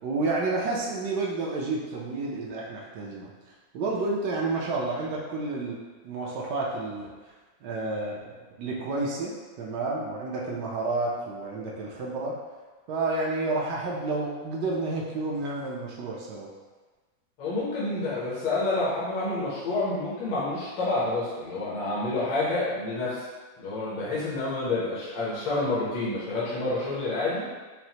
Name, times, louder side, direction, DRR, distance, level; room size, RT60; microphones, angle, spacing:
voice 1, 0.0-3.3 3.7-5.8 6.0-7.1 7.6-12.3 12.9-16.5, right 3 dB, 70° right, -3 dB, 1.2 m, -30 dB
voice 2, 17.4-23.3 23.6-27.5, left 2 dB, 80° left, -8 dB, 1.7 m, -28 dB
6.0 x 2.1 x 2.8 m, 1.3 s
omnidirectional pair, 2.0 m